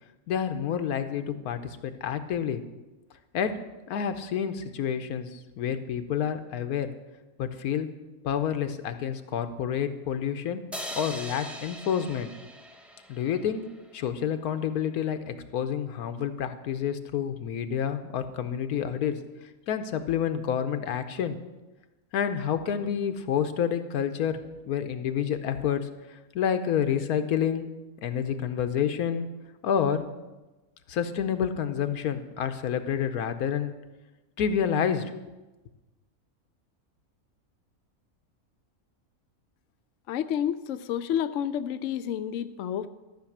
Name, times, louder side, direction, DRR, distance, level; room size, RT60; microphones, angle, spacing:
voice 1, 0.3-2.6 3.3-3.5 3.9-6.9 7.4-7.9 8.2-10.6 11.0-12.3 13.1-13.6 13.9-19.1 19.7-21.4 22.1-24.4 24.7-27.7 28.0-29.3 29.6-30.1 30.9-33.7 34.4-35.0, left 8 dB, 90° left, 9 dB, 1.3 m, -29 dB
sound 1, 10.7-14.0, equal, ahead, 0.5 m, -41 dB
voice 2, 40.1-42.9, left 9 dB, 65° left, 10 dB, 0.9 m, -30 dB
13.0 x 6.1 x 7.2 m, 1.1 s
omnidirectional pair, 1.5 m